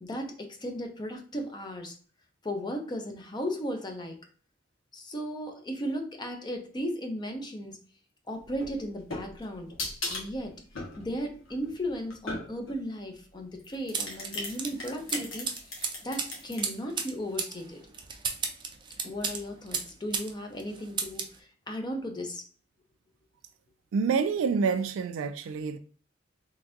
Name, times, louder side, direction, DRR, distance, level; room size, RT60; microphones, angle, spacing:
voice 1, 0.0-1.9 2.4-4.2 4.9-7.8 8.3-9.7 10.1-15.5 16.0-17.8 19.0-22.4, equal, 20° left, 0.6 m, -36 dB
sound 1, 8.5-12.8 13.6-16.6, left 2 dB, 80° left, 1.3 m, -38 dB
sound 2, 13.9-20.3 20.6-21.4, right 5 dB, 25° right, 0.4 m, -34 dB
voice 2, 23.9-25.8, right 5 dB, 85° right, 0.3 m, -27 dB
3.9 x 3.3 x 2.5 m
head